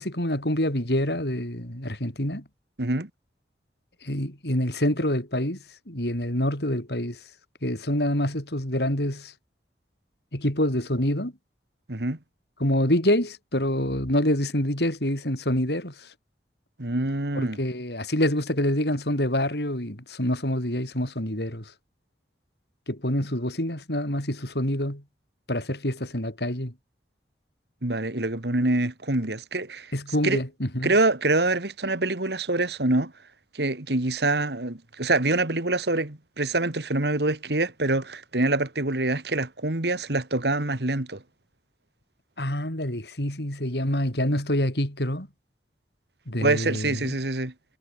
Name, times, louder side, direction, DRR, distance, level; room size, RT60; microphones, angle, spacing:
voice 1, 0.0-2.4 4.0-5.6 5.9-7.2 7.6-9.3 10.3-11.3 12.6-16.1 17.3-21.7 22.9-25.0 25.5-26.7 29.9-30.9 42.4-45.3 46.3-47.2, left 1 dB, 70° left, 6.2 m, -26 dB
voice 2, 2.8-3.1 11.9-12.2 16.8-17.6 27.8-29.9 30.2-30.4 30.8-33.1 33.5-41.2 46.4-47.5, right 2 dB, 70° right, 2.3 m, -25 dB
head